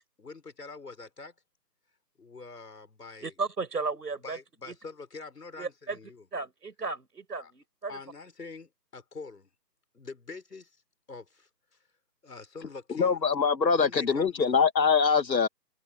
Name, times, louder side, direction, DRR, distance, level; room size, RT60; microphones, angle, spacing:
voice 1, 0.2-1.3 2.2-3.3 4.2-6.3 7.4-7.5 7.9-9.5 9.9-10.8 11.1-11.5 12.2-13.2 13.7-14.5, left 4 dB, 65° left, 6.0 m, -45 dB
voice 2, 3.2-4.4 5.6-6.0 6.3-8.0, right 4 dB, 65° right, 6.1 m, -34 dB
voice 3, 12.9-15.5, left 5 dB, 85° left, 1.5 m, -23 dB
figure-of-eight pair, 175°, 50 cm